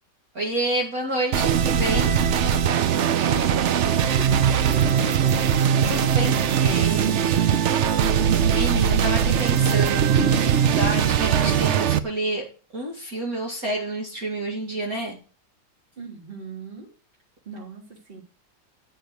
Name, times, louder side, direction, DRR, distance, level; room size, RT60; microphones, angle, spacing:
voice 1, 0.3-2.1 5.9-7.7 8.5-12.4 12.7-15.2, right 2 dB, 50° right, -1 dB, 2.3 m, -29 dB
sound 1, 1.3-12.0, right 8 dB, 75° right, 0.6 m, -20 dB
voice 2, 3.2-5.7 6.3-7.4 16.0-16.9 17.5-18.2, right 3 dB, 30° right, 3 dB, 2.5 m, -38 dB
8.9 x 6.5 x 8.1 m, 0.39 s
omnidirectional pair, 2.0 m